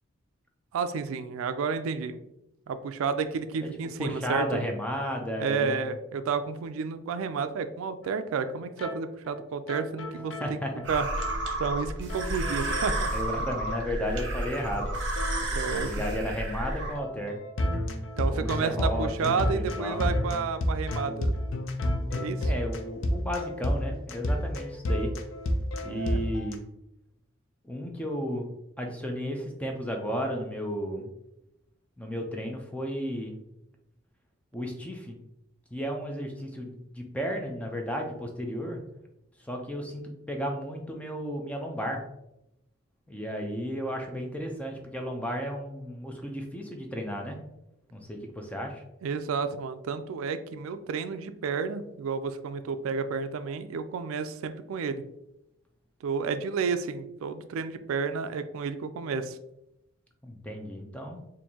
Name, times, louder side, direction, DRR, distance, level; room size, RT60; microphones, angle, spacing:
voice 1, 0.7-2.2 2.7-4.6 5.4-10.6 10.9-11.2 11.6-13.1 13.4-13.5 15.5-15.9 18.2-21.3 22.1-22.5 25.9-26.2 49.0-55.0 56.0-59.4, right 5 dB, 80° right, 10 dB, 0.3 m, -31 dB
voice 2, 4.0-5.8 10.4-10.7 13.1-14.9 15.7-17.4 18.3-20.1 22.4-25.1 25.8-26.6 27.6-28.5 28.8-31.1 32.0-33.4 34.5-35.2 35.7-38.8 39.5-42.0 43.1-47.4 47.9-48.8 60.2-61.2, equal, 5° left, 2 dB, 0.4 m, -33 dB
sound 1, 8.0-8.1 8.3-8.5 8.8-8.9 9.2-9.4 9.7-11.4 11.6-11.8 12.1-13.4 13.7-13.8 14.1-14.3 14.6-26.5, left 1 dB, 65° left, 0.5 m, -31 dB
sound 2, 10.8-16.9, right 1 dB, 55° right, 0.7 m, -31 dB
4.4 x 2.6 x 2.7 m, 0.86 s
head